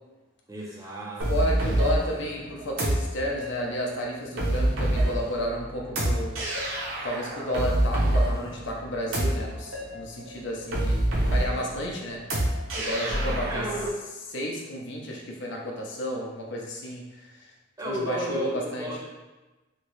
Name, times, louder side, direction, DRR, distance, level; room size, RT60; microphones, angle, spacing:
voice 1, 0.5-1.3 1.6-2.0 13.5-13.9 17.8-19.0, equal, 15° right, -3 dB, 0.4 m, -33 dB
sound 1, 1.2-13.9, right 1 dB, 70° right, 0.8 m, -27 dB
voice 2, 1.3-6.4 7.0-12.2 12.8-13.6 14.3-17.5 17.8-18.9, equal, 55° left, -1 dB, 0.6 m, -32 dB
2.9 x 2.7 x 3.1 m, 1.1 s
head